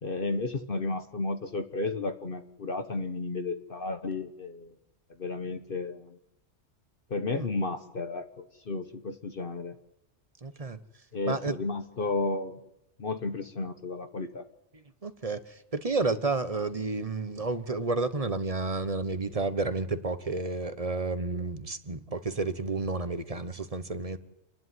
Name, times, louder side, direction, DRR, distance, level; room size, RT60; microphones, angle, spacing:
voice 1, 0.0-4.7 5.2-6.2 7.1-9.7 11.1-12.6 13.0-14.4, left 3 dB, 50° left, 1.3 m, -33 dB
voice 2, 10.4-10.8 11.2-11.5 14.7-24.2, right 3 dB, 30° right, 1.1 m, -31 dB
27.5 x 11.0 x 9.5 m
omnidirectional pair, 1.2 m